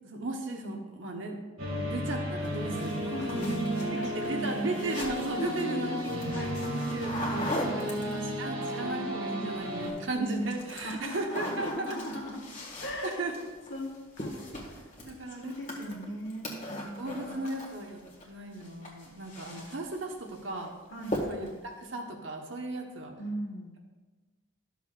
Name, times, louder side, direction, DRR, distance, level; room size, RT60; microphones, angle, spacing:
voice 1, 0.0-1.4 1.7-3.6 4.0-5.9 6.3-12.0 13.0-13.5 15.0-15.8 17.0-20.7 21.3-23.1, right 2 dB, 65° right, 2 dB, 1.2 m, -36 dB
sound 1, 1.6-9.9, equal, 85° right, 2.1 m, -33 dB
sound 2, 2.4-8.5 9.6-10.1 10.4-18.3 18.5-20.0 20.4-20.7 21.0-21.6, left 1 dB, 35° left, 1.8 m, -40 dB
voice 2, 3.1-4.9 5.4-6.6 7.5-8.3 10.7-12.4 12.8-13.2 13.7-13.9 14.2-14.9 15.4-17.4 20.9-21.2 23.2-23.7, equal, 60° left, 1 dB, 1.6 m, -39 dB
13.0 x 7.1 x 2.5 m, 1.3 s
head